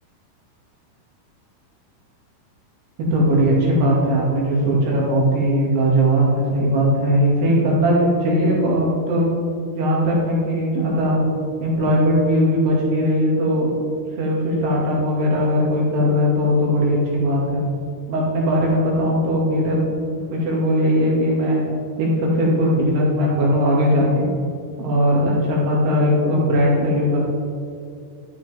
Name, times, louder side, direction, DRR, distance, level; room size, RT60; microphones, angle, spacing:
voice 1, 3.1-9.3 9.8-11.2 11.6-13.7 14.2-17.6 18.1-19.9 20.3-21.6 22.0-24.3 24.8-27.2, equal, 60° right, -4 dB, 3.9 m, -19 dB
12.5 x 12.5 x 3.5 m, 2.4 s
omnidirectional pair, 5.7 m